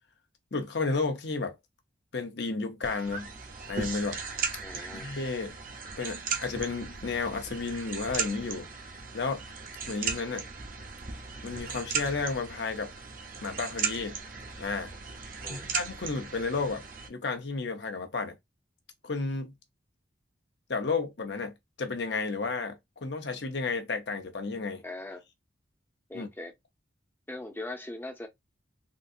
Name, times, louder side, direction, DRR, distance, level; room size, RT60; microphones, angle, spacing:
voice 1, 0.5-1.5 2.1-3.3 3.7-4.2 4.7-5.5 6.0-8.7 9.1-9.4 9.9-10.4 11.4-12.9 13.4-14.2 14.6-14.9 15.5-16.8 17.1-18.3 19.0-19.5 20.7-22.7 23.0-24.8 26.1-26.3, left 4 dB, 65° left, 0.8 m, -32 dB
sound 1, 2.8-17.1, right 6 dB, 45° right, 0.7 m, -37 dB
voice 2, 4.6-5.1 15.4-15.6 24.8-25.2 26.1-26.5 27.3-28.3, left 2 dB, 10° left, 0.6 m, -40 dB
3.7 x 2.6 x 2.7 m
head